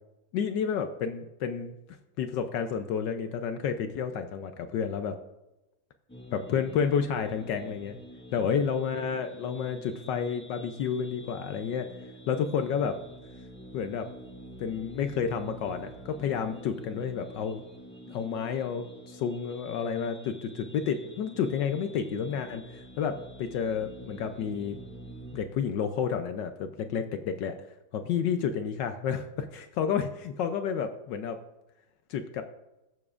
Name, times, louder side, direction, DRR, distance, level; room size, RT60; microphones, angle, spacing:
voice 1, 0.3-1.7 2.2-5.2 6.3-8.0 8.3-11.9 12.3-13.0 13.7-14.1 14.6-17.6 18.1-24.8 25.3-27.6 27.9-31.4 32.1-32.4, left 7 dB, 75° left, 8 dB, 1.0 m, -30 dB
sound 1, 6.1-25.4, equal, 5° left, 1.1 m, -47 dB
14.5 x 7.0 x 2.4 m, 0.99 s
omnidirectional pair, 2.4 m